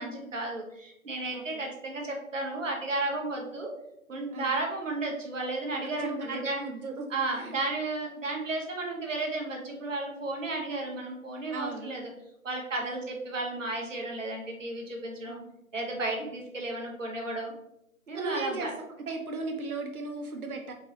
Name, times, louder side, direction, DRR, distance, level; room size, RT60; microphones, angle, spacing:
voice 1, 0.0-3.7 4.1-6.6 7.1-12.0 12.4-15.4 15.7-17.5 18.1-18.7, right 2 dB, 60° right, 1 dB, 1.0 m, -33 dB
voice 2, 1.3-1.6 4.3-4.5 6.0-7.1 7.4-7.5 11.5-12.0 12.8-13.0 15.3-15.5 18.1-18.7 19.1-20.7, right 3 dB, 90° right, 3 dB, 0.8 m, -37 dB
4.5 x 2.9 x 2.8 m, 0.84 s
figure-of-eight pair, 175°, 42 cm